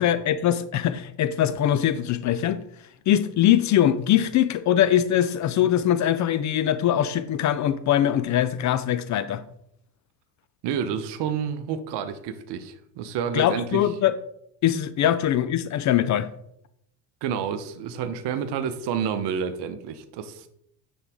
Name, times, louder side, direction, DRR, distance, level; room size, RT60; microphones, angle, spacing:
voice 1, 0.0-2.6 3.1-9.4 13.3-14.1 14.6-16.3, left 11 dB, 40° left, 0.4 m, -22 dB
voice 2, 10.6-13.8 17.2-20.5, right 7 dB, 55° right, 0.9 m, -29 dB
9.6 x 4.0 x 3.6 m
hypercardioid pair, 70°, 49 cm